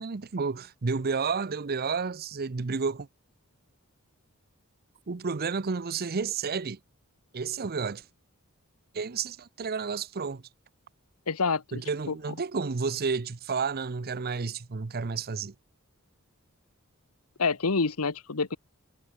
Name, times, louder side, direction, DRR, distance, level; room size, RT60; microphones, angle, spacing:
voice 1, 0.0-3.1 5.1-6.8 7.3-8.0 8.9-10.4 11.7-15.5, right 5 dB, 45° right, 0.7 m, -31 dB
voice 2, 11.3-11.8 12.1-12.2 17.4-18.6, left 4 dB, 80° left, 1.1 m, -27 dB
head